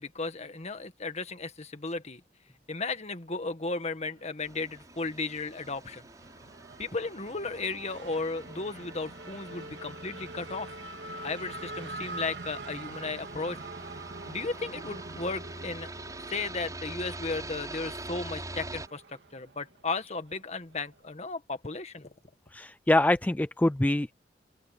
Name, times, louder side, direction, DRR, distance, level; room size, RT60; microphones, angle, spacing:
voice 1, 0.0-2.2 2.7-6.0 6.8-10.7 11.2-13.6 14.3-15.9 16.3-19.0 19.3-22.1, left 3 dB, 40° left, 1.7 m, -35 dB
Race car auto racing / Accelerating revving vroom, 4.1-21.1, right 2 dB, 75° right, 2.0 m, -45 dB
sound 1, 4.4-18.9, right 2 dB, 20° right, 7.0 m, -45 dB
voice 2, 22.5-24.1, left 1 dB, 10° left, 0.4 m, -25 dB
open air
head